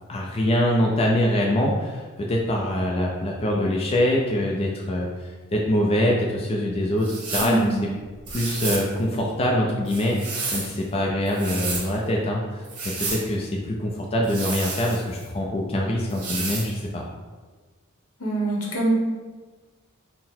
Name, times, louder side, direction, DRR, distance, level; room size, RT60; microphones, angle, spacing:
voice 1, 0.1-7.9 8.3-17.0, left 1 dB, 25° left, -1 dB, 0.3 m, -24 dB
sound 1, 7.0-7.6 8.3-8.9 9.9-10.7 11.3-11.9 12.6-13.2 14.2-15.3 16.1-16.7, right 3 dB, 85° right, 0.9 m, -31 dB
voice 2, 7.4-7.8 18.2-18.9, right 2 dB, 80° left, -2 dB, 0.9 m, -24 dB
3.9 x 2.1 x 4.2 m, 1.3 s
head